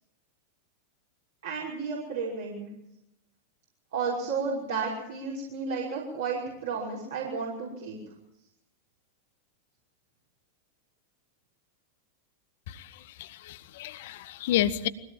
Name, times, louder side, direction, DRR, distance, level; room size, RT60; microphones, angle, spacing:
voice 1, 1.4-2.6 3.9-8.0, right 5 dB, 60° right, -5 dB, 5.8 m, -32 dB
voice 2, 13.2-14.9, left 12 dB, 50° left, 15 dB, 1.2 m, -29 dB
23.5 x 17.5 x 7.4 m, 0.86 s
figure-of-eight pair, 90°, 0 cm